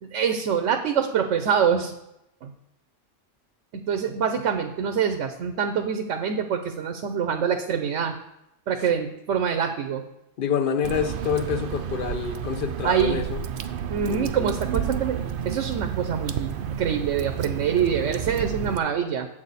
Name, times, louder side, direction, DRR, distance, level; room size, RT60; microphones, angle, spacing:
voice 1, 0.0-1.9 2.4-2.5 3.7-8.1 8.7-10.0 12.8-13.2 13.9-19.3, right 7 dB, 75° right, 1.0 m, -25 dB
voice 2, 10.4-13.4 14.0-14.4, left 7 dB, 50° left, 0.7 m, -27 dB
Water / Drip, 10.8-18.8, right 8 dB, 60° right, 0.6 m, -31 dB
8.8 x 7.0 x 4.1 m
omnidirectional pair, 1.3 m